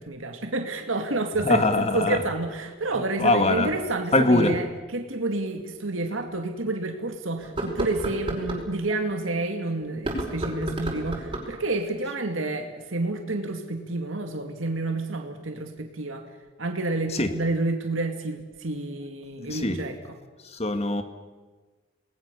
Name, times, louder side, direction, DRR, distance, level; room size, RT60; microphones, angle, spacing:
voice 1, 0.0-4.7 4.9-16.3 16.6-19.9, right 2 dB, 85° right, 4 dB, 2.2 m, -29 dB
voice 2, 1.4-2.2 2.9-3.7 4.1-4.6 17.1-17.3 19.5-19.8 20.6-21.0, left 2 dB, 30° left, 8 dB, 1.9 m, -22 dB
sound 1, 5.5-5.6 6.1-6.2 7.4-8.6 9.9-11.6, right 1 dB, 25° right, 5.0 m, -31 dB
28.5 x 20.0 x 6.9 m, 1.4 s
head